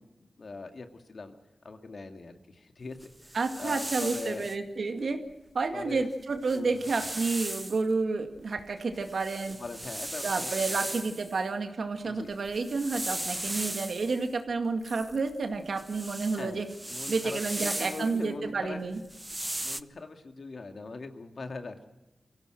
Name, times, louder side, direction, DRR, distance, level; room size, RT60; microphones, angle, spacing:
voice 1, 0.0-1.3 1.6-4.5 5.7-6.1 6.5-6.8 9.6-10.5 12.1-12.3 16.3-18.8 19.3-21.8, left 3 dB, 60° left, 6 dB, 2.2 m, -41 dB
sound 1, 3.0-4.6 5.9-6.0 6.4-7.8 8.4-11.4 12.3-14.2 14.8-18.2 19.0-19.8, right 1 dB, 15° right, 0.7 m, -37 dB
voice 2, 3.3-5.2 5.5-9.6 10.2-16.7 17.1-19.0, right 4 dB, 70° right, 6 dB, 2.1 m, -30 dB
23.5 x 16.5 x 7.7 m, 0.99 s
wide cardioid pair, 75°, 0 cm